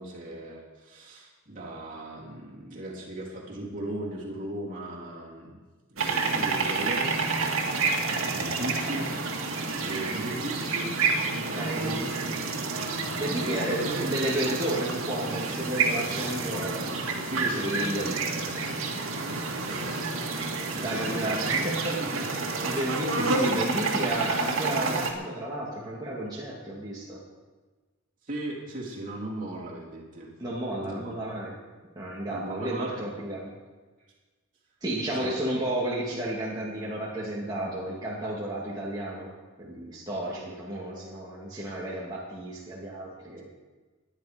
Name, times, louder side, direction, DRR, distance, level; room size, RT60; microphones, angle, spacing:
voice 1, 0.0-5.6 5.9-7.3 8.4-11.0 11.3-12.5 13.2-14.2 17.2-18.8 19.6-21.7 22.0-22.5 23.4-23.5 28.2-30.3 30.8-31.1 32.3-33.0 35.2-35.3, right 1 dB, 40° right, -4 dB, 3.6 m, -38 dB
sound 1, 6.0-25.1, right 3 dB, 80° right, 2.1 m, -29 dB
voice 2, 11.5-12.1 13.2-16.9 17.4-18.1 19.7-19.8 20.8-27.2 30.4-31.6 32.0-33.6 34.8-39.3 39.6-43.5, right 1 dB, 20° right, -6 dB, 2.3 m, -32 dB
19.5 x 10.5 x 5.2 m, 1.3 s
head